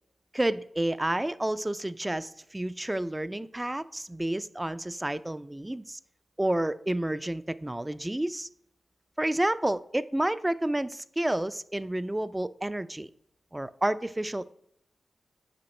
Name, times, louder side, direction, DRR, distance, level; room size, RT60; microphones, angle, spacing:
voice 1, 0.3-6.0 6.4-8.5 9.2-13.1 13.5-14.5, right 1 dB, 20° right, 13 dB, 0.3 m, -30 dB
7.7 x 5.2 x 3.2 m, 0.71 s
cardioid pair, 40°, 0 cm